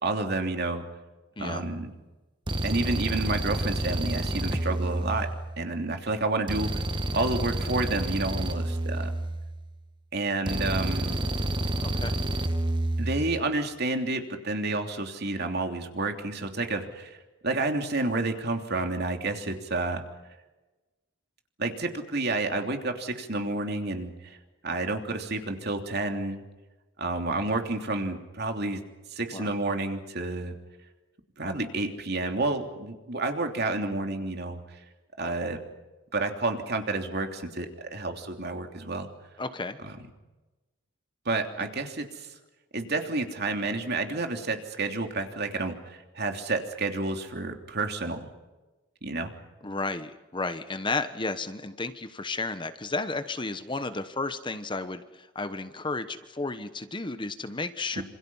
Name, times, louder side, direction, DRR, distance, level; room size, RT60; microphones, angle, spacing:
voice 1, 0.0-0.8 1.4-1.9 2.6-5.3 5.6-6.8 7.1-9.1 10.1-11.2 13.0-17.2 17.4-20.0 21.6-24.4 24.6-26.4 27.0-28.8 29.1-30.5 31.4-34.8 35.2-35.6 36.1-39.1 39.8-40.0 41.2-42.3 42.7-48.2 49.0-49.3 58.0-58.1, right 2 dB, 55° right, 4 dB, 3.2 m, -30 dB
sound 1, 1.4-1.7 2.5-5.7 6.5-9.7 10.5-13.4, right 1 dB, 25° right, 1.5 m, -29 dB
voice 2, 11.8-12.1 29.3-29.5 39.4-39.8 49.6-58.0, left 3 dB, 25° left, 10 dB, 1.1 m, -33 dB
27.5 x 27.0 x 5.7 m, 1.1 s
head